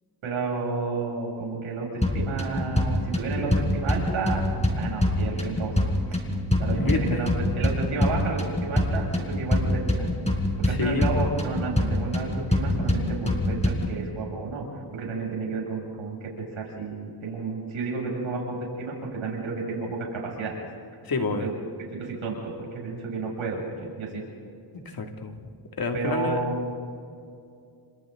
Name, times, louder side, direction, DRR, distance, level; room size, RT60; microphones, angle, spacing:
voice 1, 0.2-1.9 2.1-4.4 4.8-5.8 6.1-6.2 6.6-10.1 10.6-14.7 14.9-20.6 21.3-21.5 21.9-24.2 25.9-26.7, right 4 dB, 85° right, -2 dB, 7.6 m, -31 dB
sound 1, 2.0-14.0, left 1 dB, 15° left, 4.6 m, -25 dB
voice 2, 6.7-7.3 10.6-11.2 21.0-21.5 24.7-25.4 25.8-26.4, left 3 dB, 50° left, 3 dB, 2.8 m, -28 dB
30.0 x 27.0 x 4.0 m, 2.4 s
cardioid pair, 85°, 47 cm